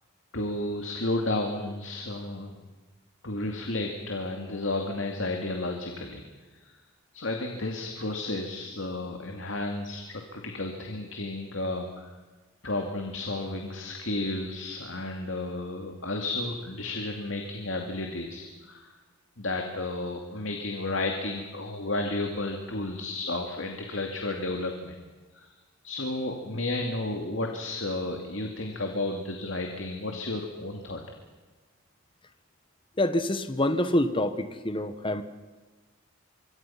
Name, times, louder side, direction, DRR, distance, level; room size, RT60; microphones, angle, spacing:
voice 1, 0.3-2.6 3.2-6.3 6.5-6.7 7.1-12.1 12.6-18.9 19.4-25.1 25.3-25.5 25.8-31.0, left 2 dB, 65° left, 3 dB, 2.4 m, -32 dB
voice 2, 33.0-35.2, left 1 dB, 25° left, 10 dB, 1.3 m, -26 dB
26.0 x 23.5 x 5.9 m, 1.3 s
head